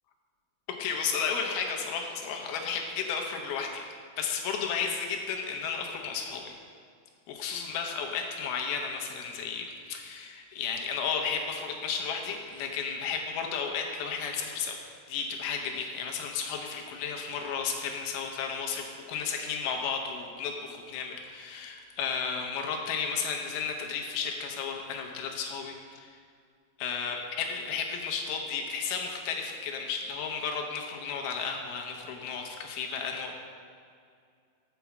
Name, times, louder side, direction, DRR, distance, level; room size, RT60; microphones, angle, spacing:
voice 1, 0.8-3.9 4.2-6.6 7.3-14.8 15.1-26.2 26.8-33.3, left 6 dB, 80° left, 2 dB, 2.7 m, -33 dB
6.8 x 5.9 x 7.1 m, 2.2 s
omnidirectional pair, 4.5 m